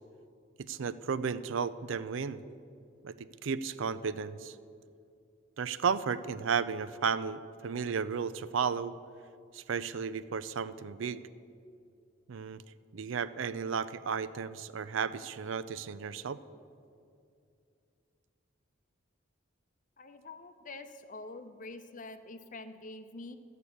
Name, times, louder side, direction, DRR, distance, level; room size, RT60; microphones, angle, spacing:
voice 1, 0.6-2.4 3.0-4.6 5.6-8.9 9.5-11.2 12.3-12.6 12.9-16.4, right 6 dB, 75° right, 15 dB, 0.4 m, -34 dB
voice 2, 20.0-23.4, left 2 dB, 40° left, 9 dB, 0.7 m, -46 dB
12.5 x 8.2 x 8.4 m, 2.5 s
head